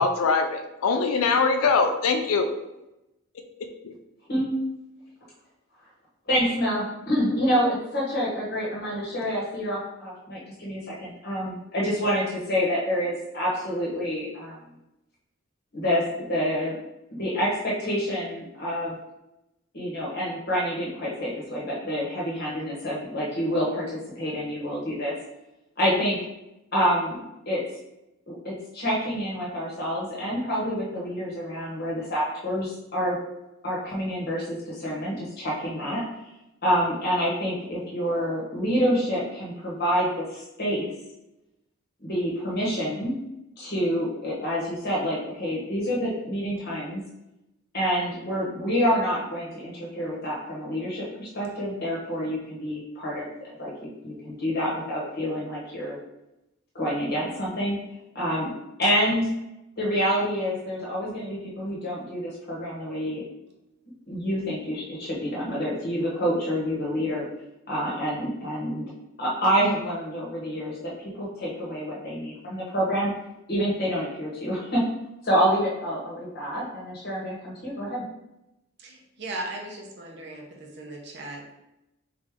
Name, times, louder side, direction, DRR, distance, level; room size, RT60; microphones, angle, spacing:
voice 1, 0.0-2.5, left 4 dB, 80° left, 6 dB, 0.4 m, -22 dB
voice 2, 6.3-14.6 15.7-16.7 17.2-18.9 19.7-25.1 25.8-26.2 26.7-27.2 27.5-27.6 28.3-33.2 33.6-36.0 36.6-40.9 42.0-43.1 43.6-47.0 47.7-53.7 54.0-56.0 56.7-57.8 58.1-58.5 58.8-59.3 59.8-63.2 64.1-67.2 67.7-68.8 69.2-73.1 73.5-74.8 75.2-78.0, equal, 45° left, -5 dB, 1.0 m, -27 dB
voice 3, 78.8-81.5, right 2 dB, 50° right, -1 dB, 0.8 m, -37 dB
3.8 x 3.4 x 3.6 m, 0.92 s
head